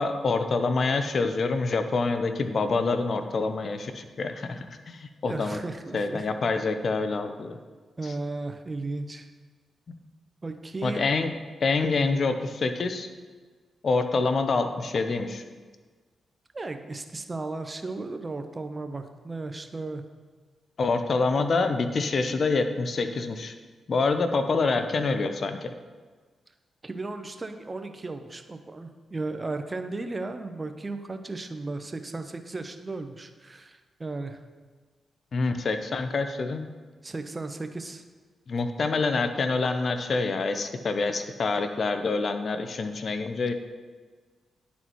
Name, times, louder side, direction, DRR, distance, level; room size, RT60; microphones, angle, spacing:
voice 1, 0.0-5.6 5.9-7.6 8.0-8.1 9.9-10.0 10.8-11.3 11.6-13.1 13.8-15.4 20.8-23.5 23.9-25.7 35.3-36.7 38.5-43.5, left 3 dB, 55° left, 8 dB, 0.6 m, -26 dB
voice 2, 5.2-6.3 8.0-9.3 10.4-11.1 16.5-20.0 26.8-34.4 37.0-38.0, right 3 dB, 35° right, 7 dB, 0.7 m, -35 dB
10.5 x 4.1 x 3.0 m, 1.4 s
hypercardioid pair, 40°, 0 cm